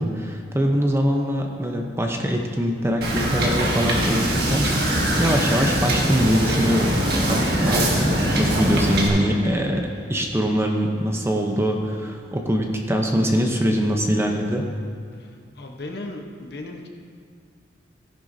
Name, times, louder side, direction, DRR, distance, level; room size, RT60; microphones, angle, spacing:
voice 1, 0.0-7.0 7.2-14.7, equal, 15° right, 2 dB, 0.8 m, -23 dB
Wind / Boat Water vehicle, 3.0-9.1, right 1 dB, 60° right, 1.7 m, -22 dB
sound 1, 3.4-9.9, left 1 dB, 80° left, 1.9 m, -41 dB
voice 2, 15.2-16.9, left 2 dB, 60° left, 2 dB, 1.0 m, -36 dB
15.0 x 10.0 x 2.7 m, 2.1 s
head